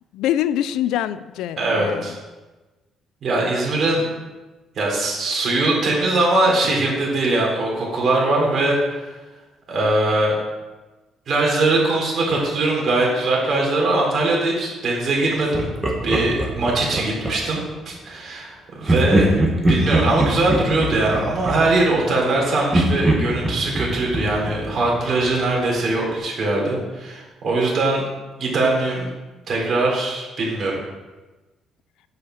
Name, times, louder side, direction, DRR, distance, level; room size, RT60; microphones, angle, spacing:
voice 1, 0.1-2.2, left 11 dB, 90° left, 15 dB, 0.4 m, -24 dB
voice 2, 1.6-2.2 3.2-4.0 4.8-9.1 9.7-10.4 11.3-15.7 16.0-19.4 19.7-28.1 28.4-29.1 29.5-30.8, right 2 dB, 45° right, -3 dB, 3.6 m, -21 dB
Laughter, 15.5-17.7 18.8-22.3 22.7-25.5, right 1 dB, 15° right, 1.6 m, -23 dB
8.4 x 6.6 x 6.4 m, 1.2 s
cardioid pair, 135°, 0 cm